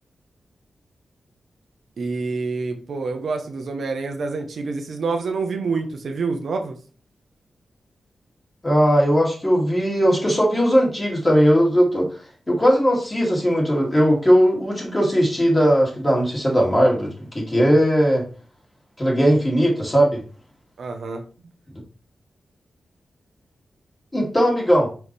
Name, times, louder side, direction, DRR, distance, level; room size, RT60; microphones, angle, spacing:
voice 1, 2.0-6.8 20.8-21.2, right 4 dB, 75° right, 5 dB, 1.0 m, -27 dB
voice 2, 8.6-12.1 12.5-18.2 19.0-20.2 21.7-21.8 24.1-24.9, equal, 20° left, -2 dB, 2.7 m, -18 dB
5.8 x 4.8 x 3.4 m, 0.38 s
cardioid pair, 75°, 0 cm